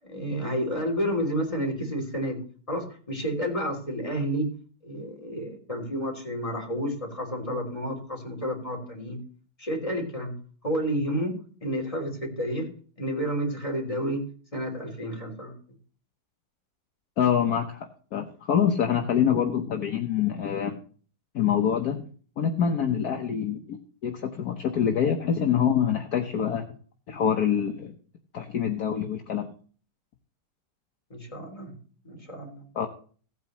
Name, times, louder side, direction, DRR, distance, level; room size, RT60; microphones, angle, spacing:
voice 1, 0.0-2.4 2.7-4.5 4.8-9.2 9.6-10.3 10.6-12.7 13.0-14.2 14.5-15.5 31.1-31.7 32.0-32.7, equal, 20° left, 0 dB, 3.1 m, -30 dB
voice 2, 17.2-20.8 21.3-22.0 22.4-23.8 24.0-26.6 27.1-27.9 28.3-29.5 32.7-32.9, left 8 dB, 60° left, 3 dB, 1.4 m, -25 dB
17.0 x 9.2 x 3.0 m, 0.42 s
omnidirectional pair, 1.9 m